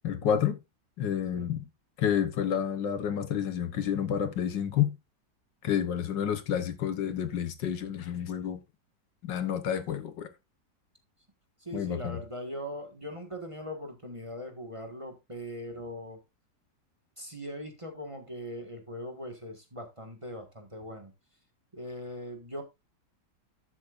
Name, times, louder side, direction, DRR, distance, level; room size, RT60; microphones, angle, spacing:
voice 1, 0.0-0.6 1.0-1.7 2.0-5.0 5.6-8.6 9.2-10.3 11.7-12.2, left 9 dB, 85° left, 1.8 m, -29 dB
voice 2, 11.6-16.2 17.2-21.1 21.7-22.6, equal, 20° right, 1.5 m, -40 dB
13.0 x 7.4 x 2.5 m
omnidirectional pair, 1.9 m